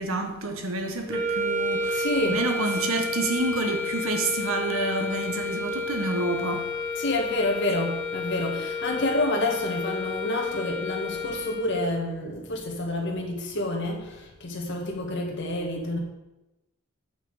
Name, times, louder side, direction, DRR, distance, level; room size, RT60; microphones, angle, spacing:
voice 1, 0.0-6.7, right 2 dB, 75° right, 1.2 m, -29 dB
sound 1, 1.1-12.0, left 3 dB, 10° left, 1.2 m, -31 dB
voice 2, 1.9-2.4 6.9-16.0, left 1 dB, 55° left, 1.7 m, -28 dB
8.5 x 5.8 x 4.9 m
head